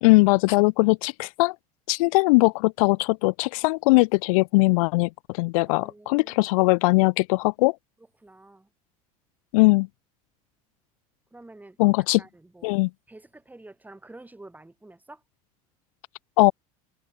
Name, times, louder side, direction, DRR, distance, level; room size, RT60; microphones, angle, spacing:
voice 1, 0.0-1.5 1.9-7.7 9.5-9.9 11.8-12.2 12.6-12.9 16.4-16.5, left 25 dB, 75° left, 0.6 m, -20 dB
voice 2, 5.7-6.5 8.2-8.7 11.3-11.8 12.2-12.8 13.1-15.2, right 2 dB, 10° right, 6.1 m, -48 dB
hypercardioid pair, 90°, 18 cm